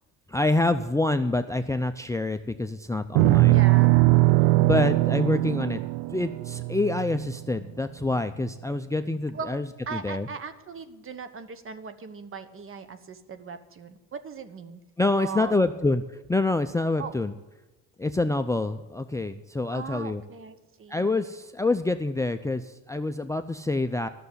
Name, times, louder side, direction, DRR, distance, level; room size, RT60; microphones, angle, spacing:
voice 1, 0.3-3.6 4.4-5.8 6.1-9.7 9.9-10.3 15.0-16.0 16.3-17.3 18.0-20.2 20.9-24.1, left 2 dB, 10° left, 10 dB, 0.5 m, -26 dB
sound 1, 3.1-7.6, right 20 dB, 80° right, 0.5 m, -21 dB
voice 2, 3.5-4.5 9.3-9.5 9.9-14.8 15.2-15.9 17.0-17.3 19.7-21.1, right 5 dB, 40° right, 11 dB, 1.1 m, -39 dB
12.5 x 6.8 x 8.1 m, 1.1 s
cardioid pair, 95°, 34 cm